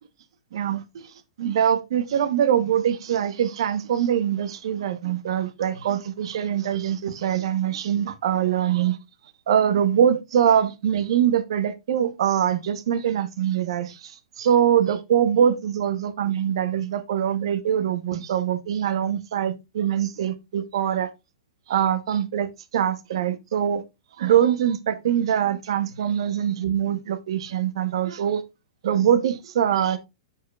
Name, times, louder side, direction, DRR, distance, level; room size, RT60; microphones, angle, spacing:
voice 1, 0.5-1.1 1.4-9.0 9.5-21.1 21.7-23.8 24.2-28.4 28.8-30.0, right 9 dB, 50° right, 0.9 m, -23 dB
7.2 x 6.6 x 2.3 m
hypercardioid pair, 180°, 3 cm